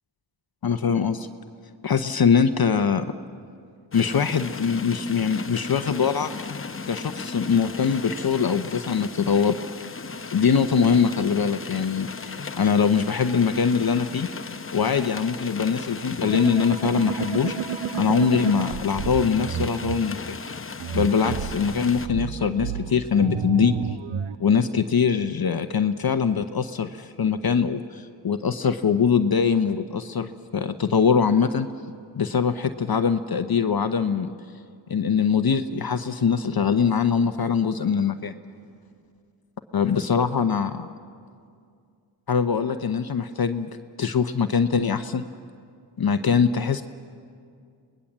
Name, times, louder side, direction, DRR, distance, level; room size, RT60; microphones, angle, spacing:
voice 1, 0.6-1.3 1.8-3.0 3.9-6.3 6.9-9.6 10.3-14.3 14.7-17.5 17.9-20.4 20.9-23.7 24.4-31.7 32.1-34.3 34.9-38.3 39.7-40.9 42.3-43.7 44.0-45.2 46.0-46.8, left 6 dB, 50° left, 9 dB, 0.9 m, -22 dB
sound 1, 3.9-22.1, left 4 dB, 30° left, 0.8 m, -36 dB
sound 2, 16.2-20.0 20.8-24.4, right 8 dB, 80° right, 0.8 m, -31 dB
24.0 x 19.5 x 7.3 m, 2.3 s
cardioid pair, 45°, 46 cm